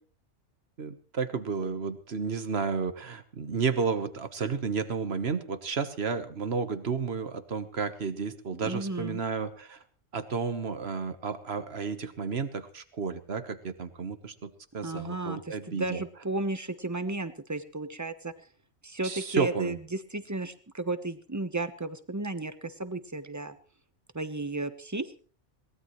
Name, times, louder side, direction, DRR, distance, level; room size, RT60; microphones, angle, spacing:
voice 1, 0.8-9.8 10.1-16.0 19.0-19.8, right 5 dB, 60° right, 10 dB, 1.5 m, -32 dB
voice 2, 8.6-9.2 14.8-18.3 18.8-23.6 24.1-25.2, right 2 dB, 15° right, 10 dB, 1.0 m, -34 dB
22.5 x 19.0 x 3.2 m, 0.41 s
omnidirectional pair, 1.2 m